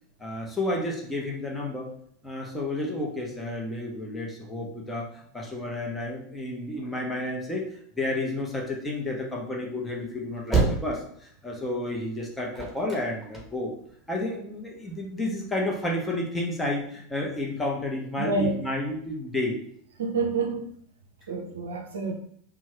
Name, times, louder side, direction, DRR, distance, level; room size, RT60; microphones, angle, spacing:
voice 1, 0.2-1.9 2.2-7.6 8.0-13.7 14.1-19.6, left 1 dB, 15° left, 0.9 m, -31 dB
sound 1, 9.9-14.1 14.6-15.5, right 4 dB, 10° right, 1.1 m, -29 dB
voice 2, 18.2-18.5 20.0-20.7 21.3-22.1, right 3 dB, 75° right, 0.4 m, -28 dB
2.6 x 2.3 x 3.2 m
figure-of-eight pair, 80°, 0 cm